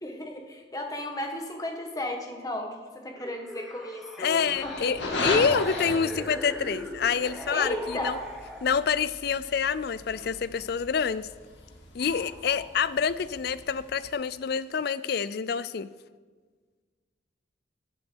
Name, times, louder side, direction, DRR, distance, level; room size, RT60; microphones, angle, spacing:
voice 1, 0.0-2.7 3.0-5.0 7.5-8.2, left 1 dB, 20° left, 2 dB, 1.4 m, -34 dB
sound 1, 3.1-9.0, equal, ahead, 0.8 m, -40 dB
voice 2, 4.2-8.2 8.6-11.3 11.9-15.9, left 6 dB, 55° left, 16 dB, 0.4 m, -27 dB
sound 2, 4.4-14.1, left 2 dB, 75° left, 2.0 m, -37 dB
14.5 x 8.4 x 4.6 m, 1.5 s
head